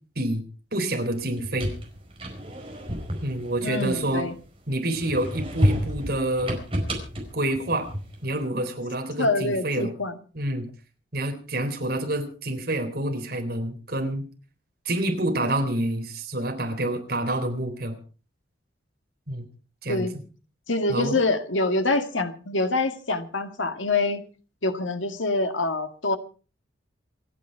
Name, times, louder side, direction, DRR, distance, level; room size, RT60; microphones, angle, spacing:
voice 1, 0.7-1.7 3.2-4.3 4.7-6.6 7.3-7.9 8.2-9.9 10.3-10.7 11.1-14.2 14.9-17.9 19.3-19.4 19.8-20.1 20.9-21.2, right 1 dB, 55° right, 5 dB, 3.8 m, -27 dB
sound 1, 1.2-4.5 4.9-8.3, equal, 30° right, 4.8 m, -30 dB
voice 2, 3.6-4.3 9.2-10.2 19.9-20.1 20.7-24.2 24.6-26.2, left 2 dB, 90° left, 7 dB, 1.9 m, -25 dB
27.5 x 9.6 x 4.6 m, 0.38 s
head